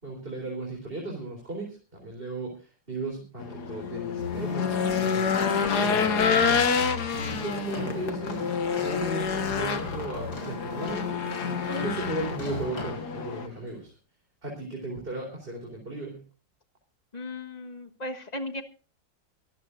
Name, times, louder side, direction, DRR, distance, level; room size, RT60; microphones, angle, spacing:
voice 1, 0.0-5.4 5.7-6.6 7.3-13.9 14.4-16.2, right 2 dB, 30° right, 0 dB, 4.1 m, -36 dB
Race car auto racing / Engine, 3.4-13.5, left 6 dB, 65° left, 1.9 m, -28 dB
sound 1, 4.2-12.8, left 1 dB, 90° right, 6.0 m, -40 dB
sound 2, 7.1-13.7, equal, 90° left, 6.7 m, -43 dB
voice 2, 17.1-18.6, left 1 dB, 25° left, 6 dB, 1.4 m, -36 dB
24.0 x 13.5 x 2.6 m, 0.34 s
omnidirectional pair, 1.9 m